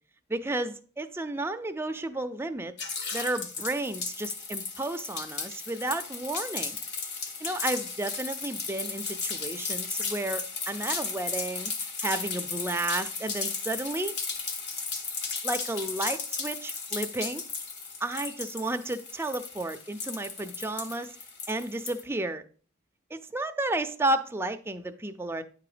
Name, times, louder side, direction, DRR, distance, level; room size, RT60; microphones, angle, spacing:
voice 1, 0.3-2.8 3.1-6.8 7.4-14.2 15.4-17.4 18.0-21.2 21.5-22.4 23.1-25.4, right 2 dB, 10° right, 0.4 m, -32 dB
sound 1, 2.8-22.0, left 4 dB, 50° left, 0.9 m, -35 dB
9.8 x 3.8 x 4.9 m
head